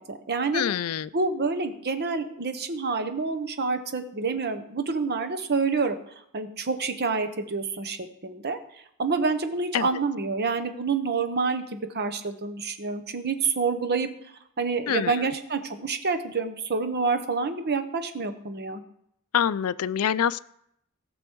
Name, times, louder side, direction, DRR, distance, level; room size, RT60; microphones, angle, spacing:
voice 1, 0.0-0.6 1.1-6.0 6.3-8.6 9.0-14.1 14.6-18.8, right 4 dB, 50° right, 8 dB, 1.0 m, -28 dB
voice 2, 0.5-1.1 9.7-9.9 14.9-15.3 19.3-20.4, left 9 dB, 75° left, 17 dB, 0.4 m, -25 dB
18.0 x 6.2 x 4.6 m, 0.75 s
head